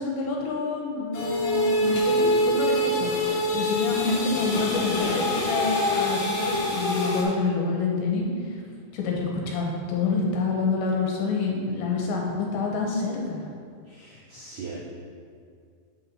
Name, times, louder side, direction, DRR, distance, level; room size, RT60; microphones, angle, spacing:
voice 1, 0.0-8.6 8.9-13.5, left 3 dB, 80° left, -1 dB, 2.4 m, -28 dB
sound 1, 1.1-7.2, left 1 dB, 60° left, 2.3 m, -25 dB
voice 2, 13.9-14.8, right 5 dB, 80° right, -7 dB, 1.8 m, -40 dB
7.8 x 4.0 x 4.3 m, 2.2 s
omnidirectional pair, 4.6 m